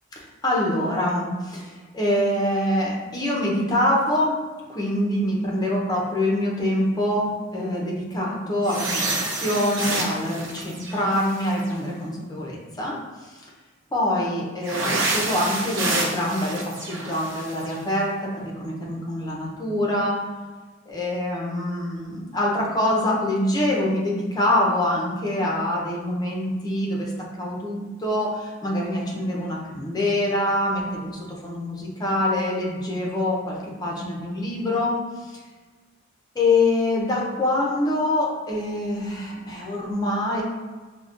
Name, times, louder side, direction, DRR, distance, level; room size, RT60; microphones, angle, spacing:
voice 1, 0.4-4.3 4.7-13.4 13.9-20.2 20.9-27.1 27.4-35.4 36.3-40.4, left 1 dB, 20° left, -3 dB, 0.6 m, -25 dB
sound 1, 8.6-11.7 14.6-17.7, right 2 dB, 75° right, 0.7 m, -28 dB
5.1 x 2.2 x 2.4 m, 1.4 s
head